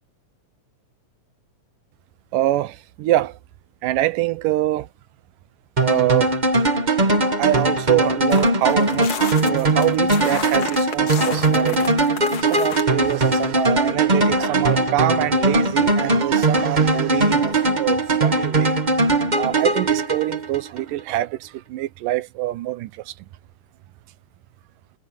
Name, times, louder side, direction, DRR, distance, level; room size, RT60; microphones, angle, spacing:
voice 1, 2.3-3.3 3.8-4.9 5.8-6.4 7.4-9.1 9.4-11.9 12.5-18.7 19.4-22.9, right 15 dB, 85° right, 2.5 m, -24 dB
sound 1, 5.8-20.8, right 2 dB, 45° right, 0.5 m, -20 dB
sound 2, 8.3-12.8, left 7 dB, 55° left, 2.6 m, -32 dB
omnidirectional pair, 3.7 m